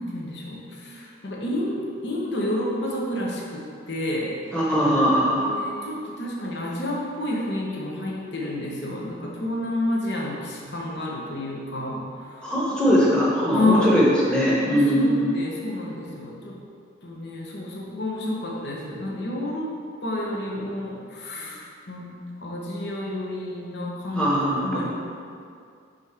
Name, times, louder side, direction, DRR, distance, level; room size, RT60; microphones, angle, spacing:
voice 1, 0.0-4.4 5.3-12.5 13.5-13.9 14.6-16.6 17.0-22.1 22.4-24.9, left 1 dB, 60° left, -3 dB, 1.0 m, -29 dB
voice 2, 4.5-5.6 12.4-15.3 24.2-24.9, equal, 5° left, -7 dB, 1.1 m, -21 dB
5.1 x 3.7 x 5.6 m, 2.3 s
head